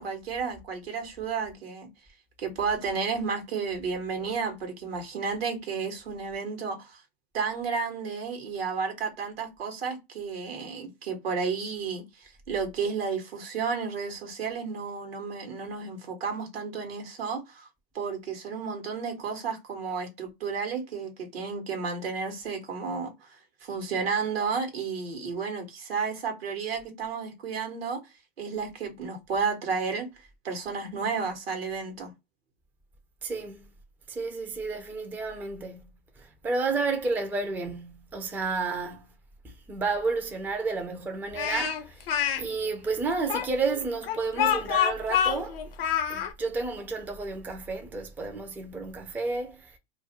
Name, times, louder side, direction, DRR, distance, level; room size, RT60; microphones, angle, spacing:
voice 1, 0.0-1.9 2.4-7.0 7.3-17.7 17.9-23.1 23.6-28.0 28.4-30.1 30.4-32.1, right 5 dB, 80° right, 1.0 m, -32 dB
voice 2, 33.2-33.7 34.1-35.8 36.2-39.1 39.4-42.1 42.4-45.6 46.1-49.8, right 4 dB, 5° right, 0.4 m, -31 dB
Speech, 41.3-42.4 43.3-46.3, left 9 dB, 75° left, 0.6 m, -26 dB
2.4 x 2.1 x 2.8 m
hypercardioid pair, 95°, 30 cm